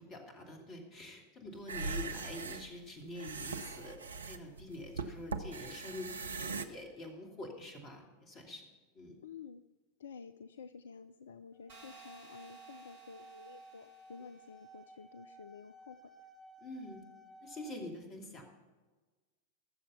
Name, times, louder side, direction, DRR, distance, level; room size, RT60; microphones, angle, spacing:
voice 1, 0.0-8.6 8.9-9.2 16.6-17.0 17.4-18.4, left 1 dB, 30° left, 2 dB, 2.8 m, -46 dB
sound 1, 1.6-6.7, right 4 dB, 75° right, 0.7 m, -40 dB
voice 2, 9.2-9.6 10.0-16.1, left 6 dB, 65° left, 13 dB, 0.4 m, -51 dB
sound 2, 11.5-17.7, right 2 dB, 20° right, 2.3 m, -56 dB
sound 3, 11.7-14.6, right 2 dB, 55° right, 2.6 m, -59 dB
19.5 x 7.2 x 5.7 m, 1.3 s
figure-of-eight pair, 90°, 0 cm